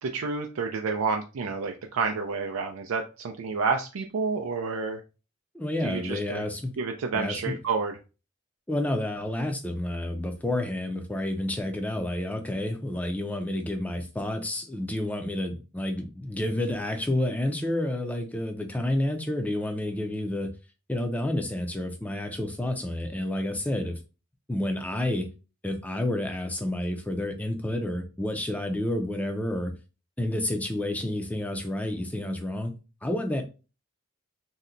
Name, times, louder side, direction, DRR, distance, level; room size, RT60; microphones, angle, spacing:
voice 1, 0.0-5.0 5.8-6.4 6.8-8.0, right 4 dB, 90° right, 3 dB, 0.4 m, -29 dB
voice 2, 5.5-6.7 7.1-7.5 8.7-20.5 20.9-24.0 24.5-25.3 25.6-29.7 30.2-32.7 33.0-33.5, left 1 dB, 5° left, 5 dB, 0.4 m, -30 dB
2.7 x 2.1 x 3.7 m, 0.32 s
head